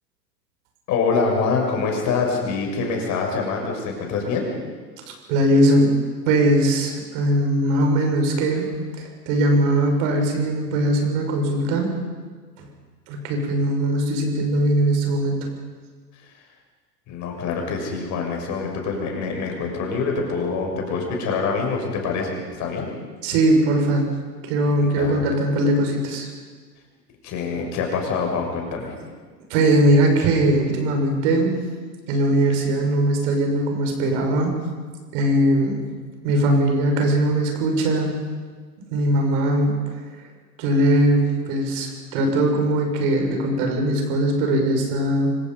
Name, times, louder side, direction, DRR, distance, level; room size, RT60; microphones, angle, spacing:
voice 1, 0.9-4.5 17.1-22.9 24.8-25.2 27.2-28.9, left 4 dB, 35° left, 1 dB, 6.6 m, -25 dB
voice 2, 5.3-6.0 6.3-8.7 9.0-11.9 12.6-12.7 13.1-15.5 23.2-24.1 24.4-26.3 29.5-31.5 32.1-34.6 35.1-35.8 36.2-38.2 38.9-39.8 40.6-45.4, right 1 dB, 45° right, 2 dB, 6.1 m, -20 dB
26.0 x 25.5 x 5.6 m, 1.5 s
figure-of-eight pair, 100°, 50 cm